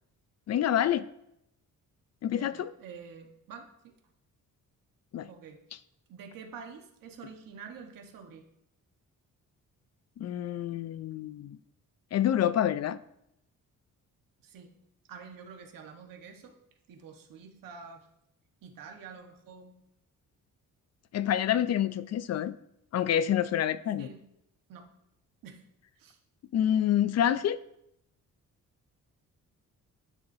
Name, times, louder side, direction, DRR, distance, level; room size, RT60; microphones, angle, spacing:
voice 1, 0.5-1.0 2.2-2.7 5.1-5.3 10.2-11.6 12.1-13.0 21.1-22.5 22.9-24.1 26.5-27.6, left 10 dB, 55° left, 16 dB, 0.4 m, -27 dB
voice 2, 2.3-3.6 5.3-5.6 6.1-8.4 14.4-14.7 15.1-16.5 16.9-18.1 18.6-19.7 24.0-24.2 24.7-24.9 25.4-25.6 26.0-26.2, right 6 dB, 90° right, 3 dB, 1.4 m, -47 dB
12.0 x 6.7 x 2.7 m, 0.79 s
cardioid pair, 120°, 33 cm